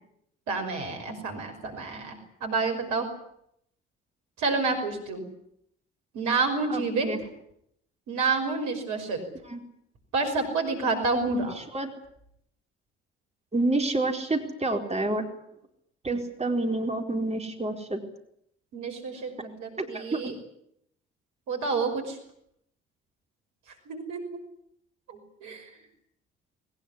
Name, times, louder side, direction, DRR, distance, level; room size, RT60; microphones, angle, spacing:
voice 1, 0.5-3.1 4.4-5.3 6.1-7.1 8.1-9.2 10.1-11.5 18.7-20.3 21.5-22.2 23.9-24.4 25.1-25.7, right 4 dB, 65° right, 5 dB, 5.6 m, -29 dB
voice 2, 6.7-7.2 9.5-9.6 11.3-11.9 13.5-15.3 16.0-18.0 19.8-20.3, right 2 dB, 20° right, 3 dB, 4.5 m, -29 dB
21.5 x 20.0 x 9.9 m, 0.73 s
figure-of-eight pair, 45°, 32 cm